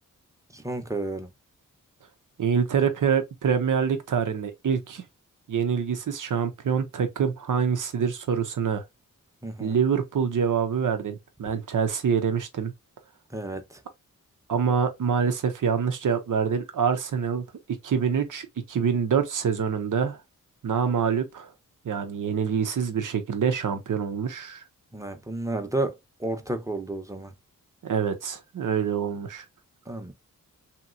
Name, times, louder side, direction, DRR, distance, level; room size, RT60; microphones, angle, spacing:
voice 1, 0.5-1.3 9.4-9.8 13.3-13.8 24.9-27.3 29.9-30.1, right 2 dB, 10° right, 0.8 m, -32 dB
voice 2, 2.4-5.0 5.5-8.8 9.6-12.7 14.5-17.4 17.8-20.2 20.6-21.5 21.8-24.6 27.8-29.4, right 7 dB, 70° right, 0.8 m, -25 dB
2.9 x 2.9 x 2.6 m
cardioid pair, 60°, 33 cm